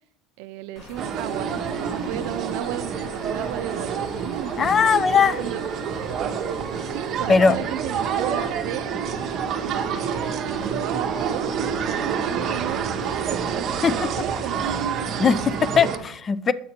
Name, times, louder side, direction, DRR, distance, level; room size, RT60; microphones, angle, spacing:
voice 1, 0.4-5.6 6.9-14.9, right 14 dB, 70° right, 0.4 m, -35 dB
sound 1, 0.8-15.5, left 1 dB, 40° left, 1.0 m, -43 dB
sound 2, 1.0-16.0, right 7 dB, 40° right, 0.8 m, -28 dB
voice 2, 4.6-5.4 7.3-7.6 13.8-13.9 15.2-16.5, left 6 dB, 25° left, 0.3 m, -19 dB
7.4 x 5.7 x 4.3 m
cardioid pair, 145°, 0 cm